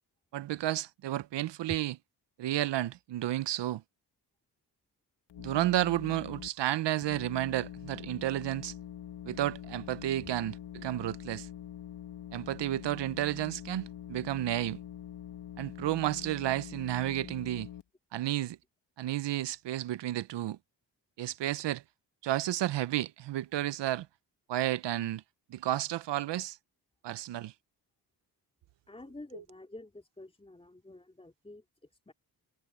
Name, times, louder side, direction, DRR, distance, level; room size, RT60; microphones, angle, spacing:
voice 1, 0.3-1.9 2.4-3.8 5.4-8.7 9.2-11.5 12.3-14.8 15.6-17.7 18.1-18.6 19.0-20.6 21.2-21.8 22.2-24.1 24.5-25.2 25.5-26.6 27.0-27.5, right 14 dB, 80° right, 0.7 m, -32 dB
sound 1, 5.3-6.5 7.0-17.8, left 10 dB, 70° left, 1.3 m, -45 dB
voice 2, 28.9-32.1, left 2 dB, 15° left, 3.7 m, -50 dB
wide cardioid pair, 125°, 42 cm